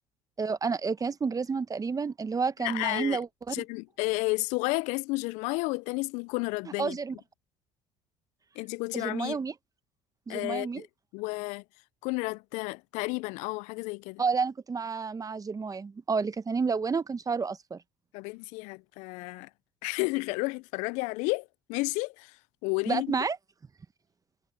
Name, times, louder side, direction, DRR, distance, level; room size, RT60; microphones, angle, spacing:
voice 1, 0.4-3.6 6.8-7.1 8.9-9.5 10.3-10.8 14.2-17.8 22.9-23.4, right 5 dB, 30° right, 1.0 m, -30 dB
voice 2, 2.6-3.2 3.5-7.0 8.6-9.4 10.3-10.9 11.1-11.6 12.0-14.2 18.1-19.5 19.8-23.1, left 26 dB, 75° left, 0.4 m, -32 dB
hypercardioid pair, 70°, 13 cm